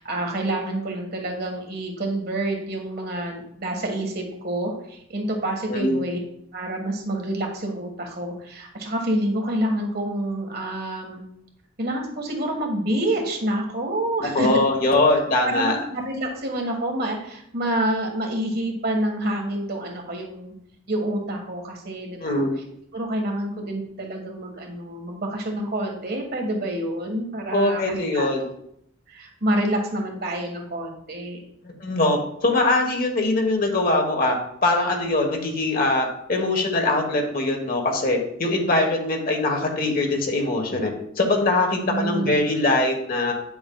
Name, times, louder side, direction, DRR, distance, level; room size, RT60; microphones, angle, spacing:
voice 1, 0.0-6.2 6.5-11.2 11.8-14.5 15.4-20.5 20.9-22.4 22.9-28.3 29.1-31.4 41.8-42.5, right 1 dB, 55° right, 2 dB, 1.6 m, -28 dB
voice 2, 14.2-15.8 22.2-22.5 27.5-28.4 31.6-34.4 34.6-43.3, left 2 dB, 45° left, 2 dB, 1.3 m, -22 dB
9.6 x 7.0 x 2.3 m, 0.73 s
head